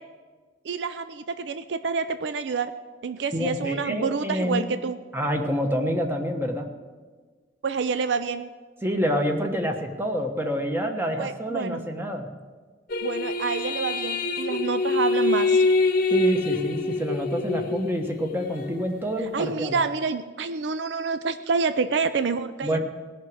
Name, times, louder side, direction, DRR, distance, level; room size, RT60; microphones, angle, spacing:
voice 1, 0.6-2.7 3.0-5.0 7.6-8.5 11.2-11.8 13.0-15.6 19.2-22.8, right 5 dB, 70° right, 11 dB, 0.5 m, -28 dB
voice 2, 3.3-4.7 5.1-6.7 8.8-12.3 16.1-19.8 22.6-22.8, equal, 15° right, 4 dB, 1.2 m, -27 dB
sound 1, 12.9-18.8, left 3 dB, 50° left, 0.9 m, -25 dB
17.5 x 6.1 x 7.8 m, 1.4 s
head